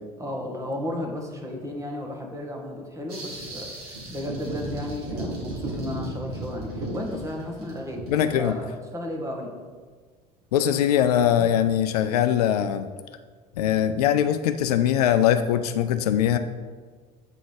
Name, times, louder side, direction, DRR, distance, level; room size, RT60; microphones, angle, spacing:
voice 1, 0.2-3.7 4.1-9.5, left 1 dB, 15° right, 0 dB, 1.6 m, -34 dB
sound 1, 3.1-8.5, right 2 dB, 70° right, 2.2 m, -35 dB
voice 2, 8.1-8.6 10.5-12.9 13.6-16.4, left 10 dB, 70° left, 10 dB, 0.4 m, -22 dB
8.5 x 3.9 x 4.9 m, 1.5 s
figure-of-eight pair, 70°, 20 cm